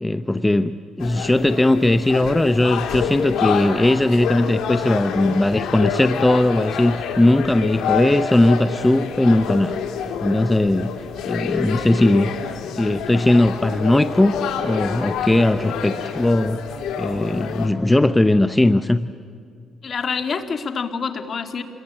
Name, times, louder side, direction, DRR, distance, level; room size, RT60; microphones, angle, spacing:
voice 1, 0.0-9.8 10.2-10.9 11.3-12.3 12.7-14.3 14.6-19.1, left 1 dB, 10° left, 11 dB, 0.6 m, -18 dB
sound 1, 1.0-17.7, left 7 dB, 80° left, 2.7 m, -27 dB
voice 2, 19.8-21.6, left 5 dB, 50° left, 7 dB, 2.1 m, -26 dB
27.0 x 22.0 x 8.8 m, 2.3 s
cardioid pair, 90°, 0 cm